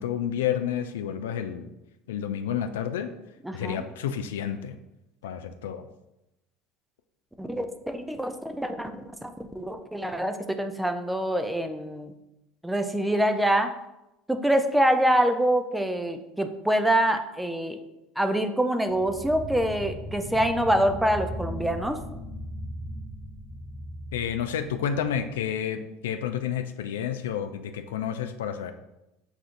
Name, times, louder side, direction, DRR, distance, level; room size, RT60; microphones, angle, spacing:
voice 1, 0.0-1.7 2.1-3.1 3.5-4.8 5.2-5.9 24.1-28.7, left 9 dB, 85° left, 8 dB, 0.3 m, -30 dB
voice 2, 3.4-3.8 7.4-8.9 9.2-12.1 12.6-13.7 14.3-17.8 18.2-22.0, right 1 dB, 5° right, 7 dB, 0.5 m, -25 dB
sound 1, 18.9-25.3, left 1 dB, 20° left, 1.1 m, -38 dB
6.9 x 2.5 x 2.5 m, 0.93 s
hypercardioid pair, 80°, 0 cm